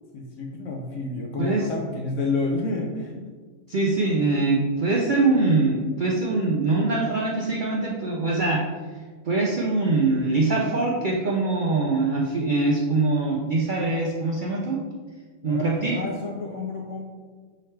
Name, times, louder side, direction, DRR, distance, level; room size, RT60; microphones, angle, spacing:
voice 1, 0.1-3.3 15.4-17.0, left 3 dB, 70° left, 0 dB, 0.9 m, -30 dB
voice 2, 3.7-8.6 9.2-14.8 15.4-16.0, right 3 dB, 85° right, -2 dB, 0.4 m, -23 dB
3.7 x 3.2 x 4.4 m, 1.5 s
omnidirectional pair, 1.5 m